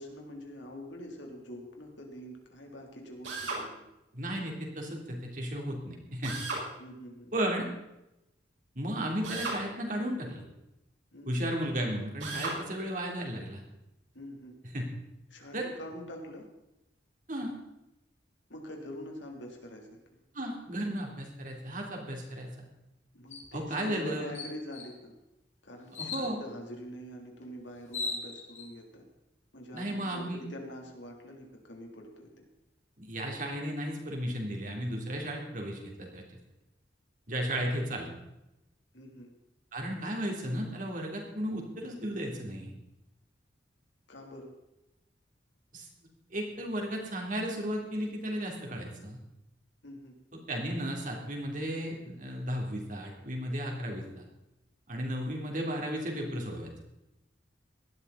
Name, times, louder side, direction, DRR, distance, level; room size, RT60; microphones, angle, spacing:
voice 1, 0.0-3.8 6.8-7.3 11.1-11.3 14.1-14.5 15.3-16.4 18.5-19.9 23.1-25.1 25.6-29.0 29.5-32.4 38.9-39.3 44.1-44.5 49.8-50.1, left 1 dB, 80° left, 1 dB, 3.2 m, -45 dB
Drill, 3.2-3.6 6.2-6.7 9.2-9.6 12.2-12.6, right 3 dB, 85° right, 5.4 m, -35 dB
voice 2, 4.1-6.4 7.3-7.6 8.7-10.4 11.3-13.6 14.7-14.8 15.5-15.7 17.3-17.6 20.3-22.5 23.5-24.3 26.0-26.4 29.7-30.4 33.0-36.2 37.3-38.1 39.7-42.7 45.7-45.9 46.3-49.2 50.5-54.0 54.9-56.7, equal, 45° right, 0 dB, 3.4 m, -34 dB
sound 1, 23.3-23.5 23.9-24.0 24.3-24.9 25.9-26.3 27.4-27.5 27.8-28.7, left 4 dB, 40° left, 2.8 m, -37 dB
18.0 x 12.5 x 4.2 m, 0.91 s
head